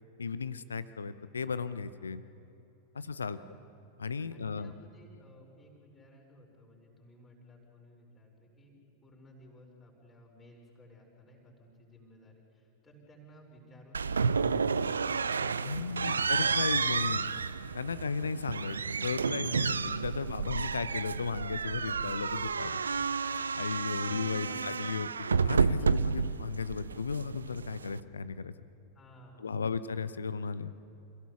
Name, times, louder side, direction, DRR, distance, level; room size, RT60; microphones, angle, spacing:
voice 1, 0.2-2.2 2.9-3.4 4.0-4.7 15.6-17.3 17.7-22.8 23.5-28.5 29.4-30.7, left 5 dB, 75° left, 15 dB, 0.8 m, -35 dB
voice 2, 3.3-3.7 4.3-8.7 9.0-16.8 20.2-20.3 24.4-24.6 25.8-26.3 28.9-29.7, equal, 20° left, -1 dB, 5.6 m, -56 dB
sound 1, 13.9-28.0, right 5 dB, 75° right, 0.5 m, -31 dB
28.0 x 17.0 x 7.1 m, 2.9 s
figure-of-eight pair, 90°, 0 cm